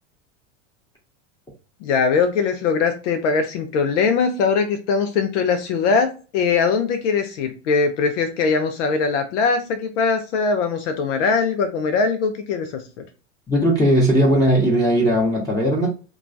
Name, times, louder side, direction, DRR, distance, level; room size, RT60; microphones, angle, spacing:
voice 1, 1.8-12.8, left 5 dB, 65° left, 6 dB, 0.7 m, -21 dB
voice 2, 13.5-15.9, equal, 10° left, -3 dB, 1.0 m, -18 dB
2.9 x 2.3 x 2.5 m, 0.33 s
hypercardioid pair, 100°, 39 cm